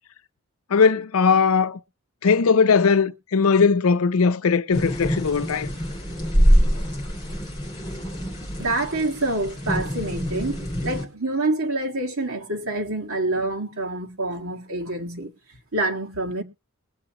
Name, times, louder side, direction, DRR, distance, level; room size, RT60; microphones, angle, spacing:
voice 1, 0.7-1.8 2.2-5.7, left 5 dB, 70° left, 0.5 m, -19 dB
sound 1, 4.7-11.0, equal, 20° left, 5.4 m, -24 dB
voice 2, 8.6-15.3 15.7-16.4, right 2 dB, 70° right, 1.8 m, -27 dB
21.5 x 7.4 x 2.9 m
head